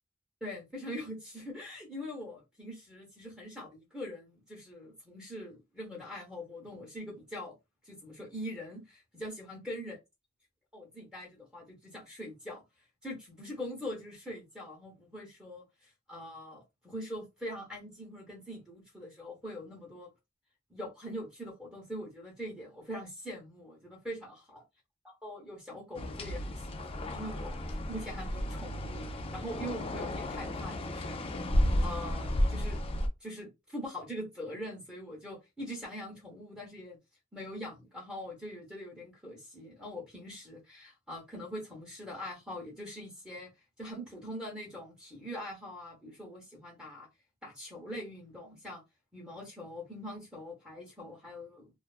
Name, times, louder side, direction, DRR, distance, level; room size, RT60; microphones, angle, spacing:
voice 1, 0.4-7.6 7.8-10.0 10.7-12.6 13.0-20.1 20.7-24.6 25.2-31.3 31.8-32.8 33.2-37.0 37.3-43.5 43.8-47.1 47.4-48.8 49.1-51.7, equal, 5° right, 0.7 m, -43 dB
sound 1, 25.9-33.1, left 1 dB, 30° left, 0.3 m, -33 dB
2.5 x 2.3 x 2.3 m
head